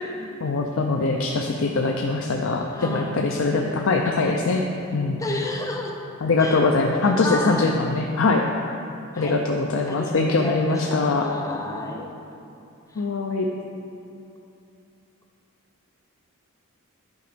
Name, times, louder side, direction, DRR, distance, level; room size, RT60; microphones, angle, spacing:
voice 1, 0.4-4.6 4.9-5.2 6.2-8.4 9.2-11.3 13.0-13.5, left 3 dB, 65° left, 2 dB, 0.5 m, -22 dB
voice 2, 2.7-3.3 5.2-6.0 6.4-6.7 7.0-7.8 9.1-9.4 9.9-12.1 12.9-13.0, left 2 dB, 15° left, 1 dB, 0.7 m, -32 dB
9.5 x 5.1 x 5.0 m, 2.8 s
head